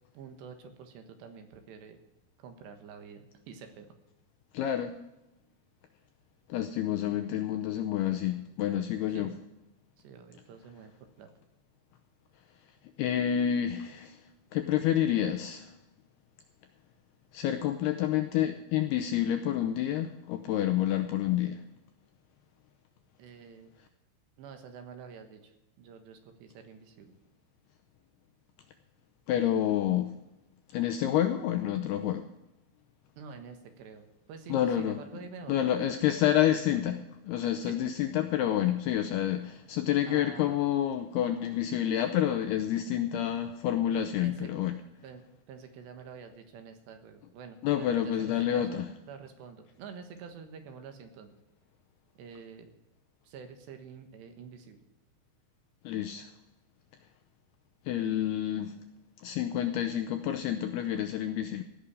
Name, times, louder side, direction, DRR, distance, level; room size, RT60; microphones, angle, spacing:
voice 1, 0.1-2.0 2.4-3.9 9.1-9.3 10.0-10.9 11.2-11.3 23.2-23.7 24.4-27.1 33.2-35.7 36.1-36.2 37.6-37.9 40.1-40.6 44.2-44.5 45.0-51.4 52.2-52.7 53.2-54.9, right 6 dB, 70° right, 6 dB, 3.4 m, -48 dB
voice 2, 4.5-4.9 6.5-9.3 13.0-14.2 14.5-15.7 17.3-21.6 29.3-30.1 30.7-32.3 34.5-35.0 35.5-44.8 47.6-48.9 55.8-56.3 57.9-58.7 59.2-61.6, left 11 dB, 90° left, 7 dB, 2.3 m, -28 dB
16.5 x 6.2 x 9.8 m, 0.89 s
omnidirectional pair, 5.4 m